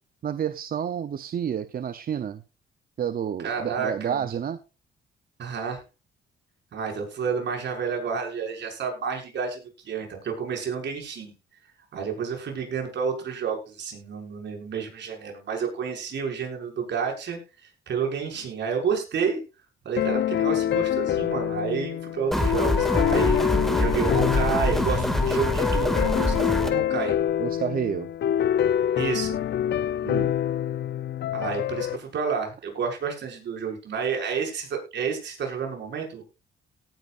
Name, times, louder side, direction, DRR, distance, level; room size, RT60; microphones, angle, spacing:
voice 1, 0.2-2.4 3.0-4.6 27.4-28.1 30.0-30.4, right 8 dB, 45° right, 12 dB, 0.8 m, -29 dB
voice 2, 3.4-4.3 5.4-5.8 6.7-11.3 11.9-19.4 19.8-27.2 29.0-29.4 31.3-36.2, right 6 dB, 65° right, 1 dB, 6.1 m, -30 dB
sound 1, 20.0-32.0, left 10 dB, 60° left, 0.6 m, -26 dB
sound 2, 22.3-26.7, left 1 dB, ahead, 2.3 m, -25 dB
18.0 x 10.5 x 2.6 m, 0.30 s
cardioid pair, 90°, 20 cm